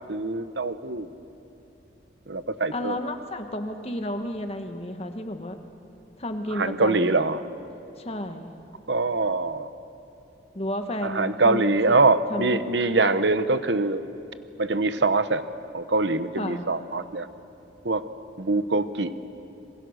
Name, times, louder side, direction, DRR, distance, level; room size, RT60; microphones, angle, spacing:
voice 1, 0.1-1.1 2.3-3.0 6.5-7.4 8.9-9.7 11.0-14.0 14.6-15.4 15.7-17.3 17.8-18.0 18.4-19.1, right 3 dB, 70° right, 12 dB, 1.0 m, -23 dB
voice 2, 2.7-5.6 6.2-7.1 8.0-8.5 10.5-11.9 12.3-12.6 16.3-16.6, left 1 dB, 35° left, 6 dB, 1.4 m, -32 dB
26.5 x 22.0 x 6.5 m, 2.9 s
head